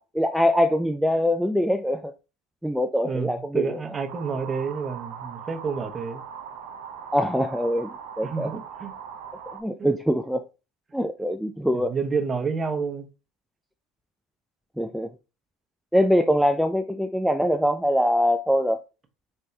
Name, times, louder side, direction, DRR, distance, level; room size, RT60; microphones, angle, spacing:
voice 1, 0.0-2.1 2.6-3.8 7.1-8.5 9.5-10.5 10.9-11.9 14.8-15.1 15.9-18.8, equal, ahead, 0.4 m, -23 dB
voice 2, 3.0-6.2 8.2-8.9 9.8-9.9 11.7-13.1, right 5 dB, 30° right, 1.1 m, -29 dB
sound 1, 4.1-9.6, right 7 dB, 65° right, 0.7 m, -40 dB
4.5 x 3.4 x 2.8 m
hypercardioid pair, 80°, 0 cm